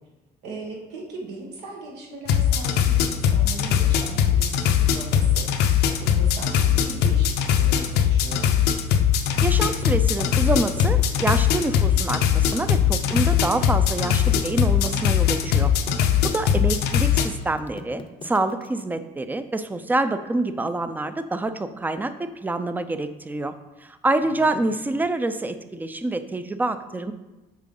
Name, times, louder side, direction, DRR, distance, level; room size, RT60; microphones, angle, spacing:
voice 1, 0.4-8.4 16.1-16.3 24.2-24.6, right 2 dB, 85° right, -1 dB, 1.6 m, -39 dB
sound 1, 2.3-17.3, left 9 dB, 75° left, 0.6 m, -20 dB
voice 2, 9.4-15.7 16.2-23.5 23.8-27.1, right 2 dB, 10° right, 11 dB, 0.4 m, -26 dB
sound 2, 9.6-18.8, left 5 dB, 30° left, 0.6 m, -40 dB
7.3 x 4.6 x 3.8 m, 1.1 s
cardioid pair, 110°, 17 cm